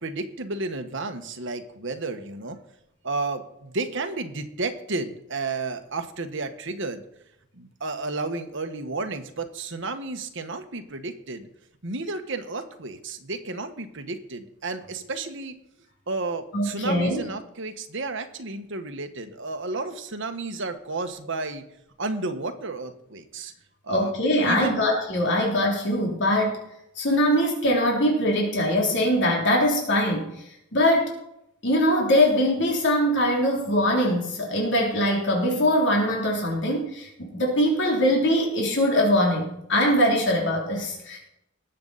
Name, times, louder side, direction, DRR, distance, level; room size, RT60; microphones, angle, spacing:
voice 1, 0.0-2.6 3.0-7.0 7.5-11.5 11.8-15.5 16.1-21.6 22.0-23.5 23.8-24.1 24.5-24.8, right 3 dB, 65° right, 7 dB, 1.4 m, -32 dB
voice 2, 16.5-17.2 23.9-26.6 26.9-30.3 30.7-31.1 31.6-41.2, equal, 60° left, -1 dB, 3.2 m, -22 dB
19.5 x 7.9 x 4.1 m, 0.80 s
head